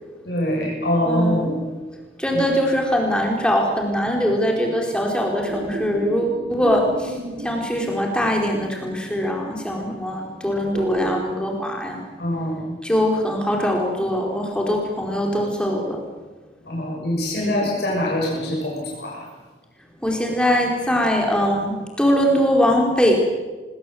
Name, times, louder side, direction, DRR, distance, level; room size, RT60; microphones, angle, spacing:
voice 1, 0.2-1.6 2.3-2.4 12.2-12.8 16.7-19.3, left 1 dB, 65° left, -3 dB, 7.2 m, -24 dB
voice 2, 1.1-1.5 2.2-12.0 12.8-16.0 17.4-17.7 20.0-23.1, equal, 5° left, 0 dB, 4.4 m, -22 dB
sound 1, 5.5-8.6 10.7-11.2, right 2 dB, 45° right, 1.6 m, -33 dB
25.5 x 21.5 x 7.9 m, 1.3 s
head